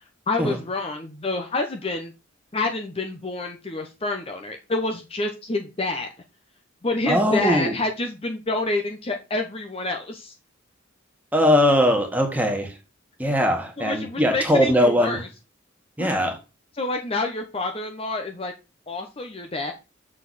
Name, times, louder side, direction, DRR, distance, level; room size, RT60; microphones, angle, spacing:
voice 1, 0.3-2.1 2.5-6.1 6.8-10.3 13.8-15.3 16.0-16.1 16.8-18.5 18.9-19.7, left 2 dB, 30° left, 4 dB, 0.8 m, -28 dB
voice 2, 7.1-7.7 11.3-12.7 13.2-15.2 16.0-16.3, equal, 10° right, 2 dB, 1.8 m, -20 dB
7.0 x 6.5 x 4.1 m, 0.28 s
head